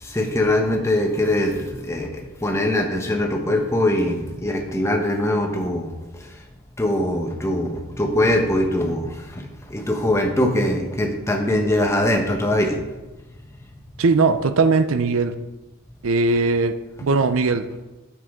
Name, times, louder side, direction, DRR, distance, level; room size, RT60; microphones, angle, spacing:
voice 1, 0.0-5.9 6.2-6.3 6.8-12.8, left 1 dB, 15° left, 2 dB, 0.9 m, -22 dB
voice 2, 14.0-15.3 16.0-17.8, right 3 dB, 70° right, 11 dB, 0.5 m, -20 dB
9.3 x 7.5 x 3.6 m, 1.1 s
head